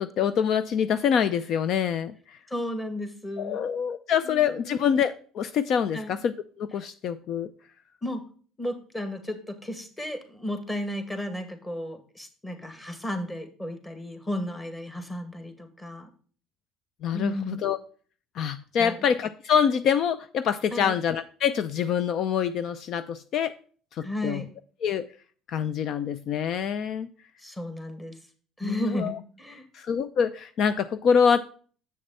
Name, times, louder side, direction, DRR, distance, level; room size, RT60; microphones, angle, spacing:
voice 1, 0.0-2.4 3.4-7.5 17.0-17.8 18.3-23.5 23.9-24.4 24.8-25.1 25.5-27.1 28.6-29.2 29.7-31.4, left 7 dB, 55° left, 12 dB, 0.5 m, -25 dB
voice 2, 2.5-3.6 4.2-4.8 5.9-6.1 8.0-8.2 8.6-16.1 17.1-17.6 18.8-19.0 20.7-20.9 24.0-24.5 27.4-28.2 28.6-29.6, left 1 dB, 15° left, 8 dB, 2.0 m, -34 dB
7.8 x 6.6 x 4.1 m, 0.42 s
supercardioid pair, 100°, 0 cm